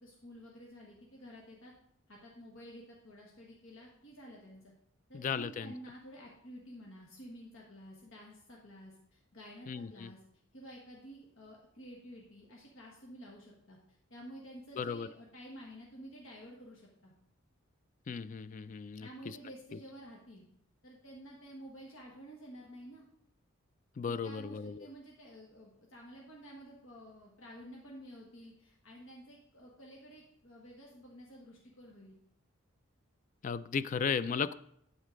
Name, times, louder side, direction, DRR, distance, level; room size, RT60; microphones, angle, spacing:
voice 1, 0.0-1.7 2.1-4.7 5.1-10.2 10.5-13.8 14.1-17.1 19.0-20.4 20.8-23.0 24.0-32.2, equal, 70° left, -2 dB, 1.4 m, -51 dB
voice 2, 5.1-5.7 9.7-10.1 14.8-15.1 18.1-19.4 24.0-24.8 33.4-34.6, left 6 dB, 40° left, 16 dB, 0.3 m, -35 dB
11.5 x 4.1 x 5.1 m, 0.73 s
head